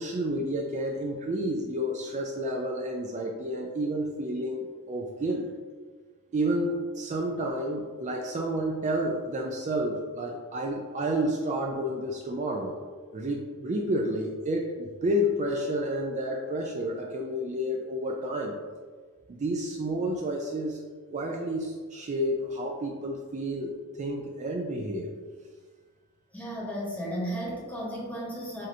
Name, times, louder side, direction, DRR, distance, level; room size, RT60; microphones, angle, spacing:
voice 1, 0.0-5.5 6.3-12.8 13.1-18.6 19.3-20.8 21.1-25.1, equal, 35° right, 0 dB, 0.4 m, -30 dB
voice 2, 26.3-28.7, equal, 5° left, -5 dB, 1.1 m, -34 dB
7.4 x 2.6 x 2.7 m, 1.5 s
head